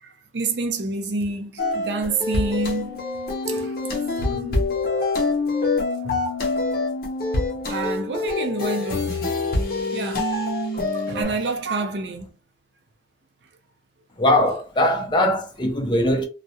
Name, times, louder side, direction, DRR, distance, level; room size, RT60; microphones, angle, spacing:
voice 1, 0.0-3.0 3.5-4.9 5.9-6.3 7.7-9.1 9.9-10.3 10.7-12.3, right 3 dB, 70° right, 0.5 m, -28 dB
sound 1, 1.6-11.2, left 3 dB, 55° left, 0.7 m, -25 dB
voice 2, 14.2-16.2, left 1 dB, 25° left, 0.4 m, -20 dB
2.3 x 2.0 x 2.7 m
head